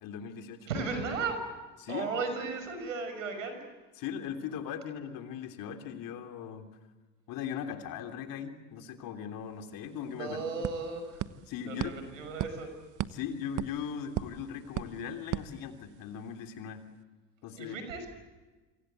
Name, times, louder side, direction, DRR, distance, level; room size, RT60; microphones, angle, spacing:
voice 1, 0.0-0.7 1.8-2.1 4.0-6.7 7.3-10.7 11.5-11.9 13.1-16.9 17.4-17.8, left 8 dB, 60° left, 5 dB, 3.2 m, -39 dB
voice 2, 0.6-1.4 1.9-3.6 9.8-11.2 11.7-12.7 17.6-18.1, right 4 dB, 85° right, 7 dB, 5.7 m, -35 dB
sound 1, 9.5-9.6 9.8-16.3, right 13 dB, 50° right, 1.1 m, -39 dB
27.5 x 26.0 x 8.0 m, 1.2 s
hypercardioid pair, 65°, 38 cm